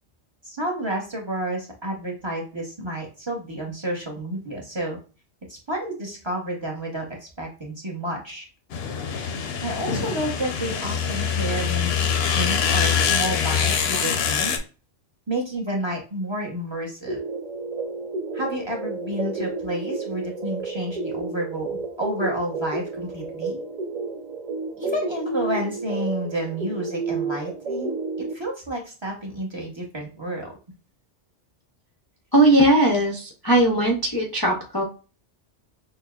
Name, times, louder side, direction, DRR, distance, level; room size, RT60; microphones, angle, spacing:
voice 1, 0.4-5.0 5.5-8.5 9.6-11.9 12.3-14.6 15.3-17.2 18.3-23.6 24.8-28.0 28.3-30.5, right 1 dB, 25° right, -1 dB, 0.8 m, -30 dB
sound 1, 8.7-14.6, left 7 dB, 65° left, 0.8 m, -24 dB
sound 2, 17.1-28.3, right 3 dB, 75° right, 0.3 m, -31 dB
voice 2, 32.3-34.8, right 1 dB, 30° left, -1 dB, 0.5 m, -19 dB
6.4 x 2.2 x 2.3 m, 0.35 s
omnidirectional pair, 1.2 m